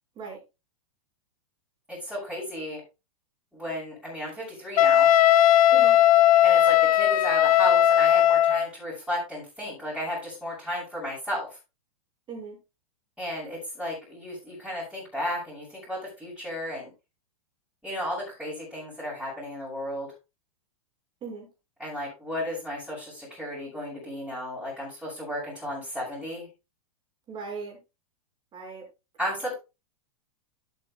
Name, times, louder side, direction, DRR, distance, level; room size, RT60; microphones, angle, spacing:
voice 1, 1.9-2.8 3.5-5.1 6.4-11.5 13.2-16.9 17.8-20.1 21.8-26.5 29.2-29.5, equal, 5° right, -9 dB, 6.3 m, -34 dB
Wind instrument woodwind instrument, 4.8-8.7, left 11 dB, 80° left, 0.7 m, -18 dB
voice 2, 5.7-6.0 12.3-12.6 21.2-21.5 27.3-27.8 28.5-28.9, right 4 dB, 25° right, 0 dB, 5.2 m, -38 dB
12.5 x 8.6 x 2.3 m, 0.26 s
hypercardioid pair, 135°, 18 cm